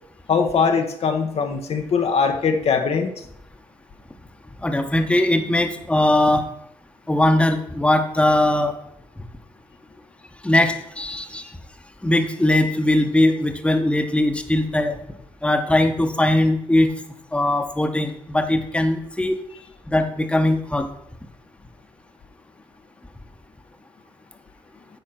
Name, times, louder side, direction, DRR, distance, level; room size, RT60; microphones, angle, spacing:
voice 1, 0.3-3.2, left 5 dB, 55° left, 5 dB, 1.0 m, -21 dB
voice 2, 4.6-6.4 7.1-8.8 10.4-11.5 12.0-15.0 15.4-16.9 17.3-19.4 19.9-20.9, left 1 dB, 10° left, 6 dB, 1.1 m, -20 dB
9.1 x 4.3 x 5.8 m, 0.73 s
supercardioid pair, 60°, 13 cm